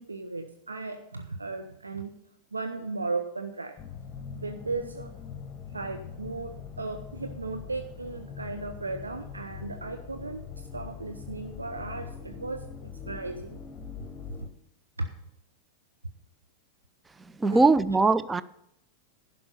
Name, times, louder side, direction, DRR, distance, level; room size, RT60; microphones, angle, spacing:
voice 1, 0.0-2.1 2.5-3.8 4.3-5.1 5.7-13.6 14.0-14.1 15.0-15.1 17.5-17.6, right 3 dB, 80° right, 0.6 m, -36 dB
sound 1, 3.8-14.5, left 7 dB, 25° left, 1.1 m, -42 dB
voice 2, 17.4-18.4, right 3 dB, 10° right, 0.4 m, -21 dB
11.0 x 5.4 x 6.9 m
figure-of-eight pair, 90°, 0 cm